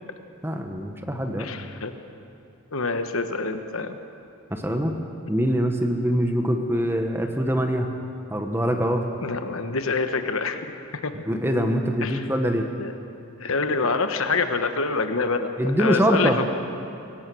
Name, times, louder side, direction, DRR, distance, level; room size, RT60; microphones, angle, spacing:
voice 1, 0.4-1.5 4.5-4.9 5.3-7.9 8.3-9.1 11.3-12.7 15.6-16.4, equal, 10° right, 4 dB, 1.2 m, -23 dB
voice 2, 1.4-1.9 2.7-4.0 9.2-10.7 11.0-11.1 12.0-12.3 12.8-12.9 13.4-15.5 15.8-16.4, left 4 dB, 70° left, 8 dB, 1.2 m, -26 dB
24.0 x 17.5 x 6.3 m, 2.7 s
head